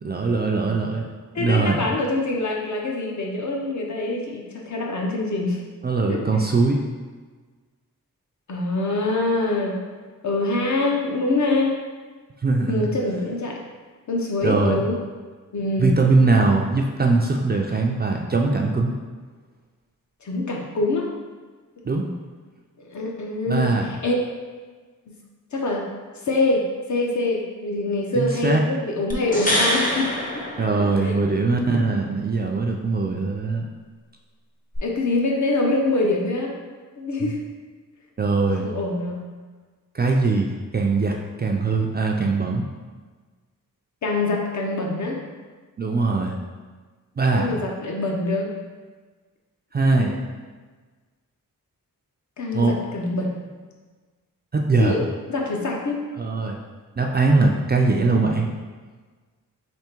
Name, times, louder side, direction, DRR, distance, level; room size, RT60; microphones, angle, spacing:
voice 1, 0.0-1.1 1.4-1.9 5.8-6.8 12.4-12.9 14.4-14.8 15.8-18.9 21.9-22.0 23.5-23.9 28.1-28.6 30.6-33.7 38.2-38.7 39.9-42.7 45.8-46.4 47.2-47.5 49.7-50.2 52.5-52.8 54.5-55.0 56.2-56.6 57.0-58.5, right 3 dB, 30° right, 0 dB, 0.4 m, -21 dB
voice 2, 1.3-5.6 6.1-6.2 8.5-9.8 10.2-11.8 12.7-13.6 14.1-14.9 15.5-16.0 20.2-21.1 22.9-24.1 25.1-25.2 25.5-25.9 26.2-30.4 30.8-31.1 34.8-36.5 37.0-37.4 38.6-39.2 44.0-45.2 47.3-48.5 52.4-53.3 54.8-56.0, left 2 dB, 55° left, 0 dB, 0.8 m, -24 dB
sound 1, 29.1-31.4 34.7-34.8, equal, 25° left, 0.7 m, -25 dB
3.5 x 3.3 x 4.4 m, 1.4 s
wide cardioid pair, 120°, 35 cm